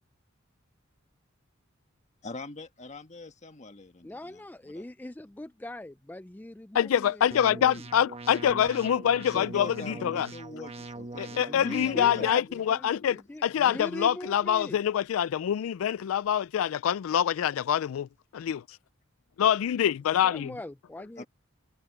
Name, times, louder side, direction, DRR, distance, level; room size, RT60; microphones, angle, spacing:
voice 1, 2.2-4.8 9.3-12.8 13.5-13.8 21.2-21.3, left 2 dB, 35° left, 1.6 m, -44 dB
voice 2, 4.0-8.0 8.5-8.6 11.5-14.8 20.2-21.2, left 1 dB, 10° left, 0.4 m, -41 dB
voice 3, 6.7-10.3 11.2-18.1 18.3-18.6 19.4-20.5, left 9 dB, 85° left, 0.3 m, -25 dB
sound 1, 7.3-12.3, right 2 dB, 30° right, 1.1 m, -42 dB
head